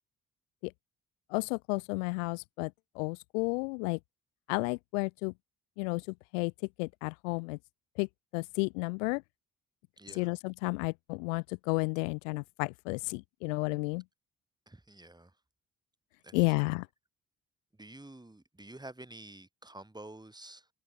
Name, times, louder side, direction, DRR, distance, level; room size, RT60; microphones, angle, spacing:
voice 1, 1.3-4.0 4.5-5.3 5.8-6.5 6.8-7.6 8.0-9.2 10.1-14.0 16.3-16.9, left 31 dB, 65° left, 0.7 m, -32 dB
voice 2, 10.0-10.3 14.7-15.4 16.2-16.7 17.8-20.7, right 1 dB, 10° right, 3.1 m, -49 dB
figure-of-eight pair, 40°, 41 cm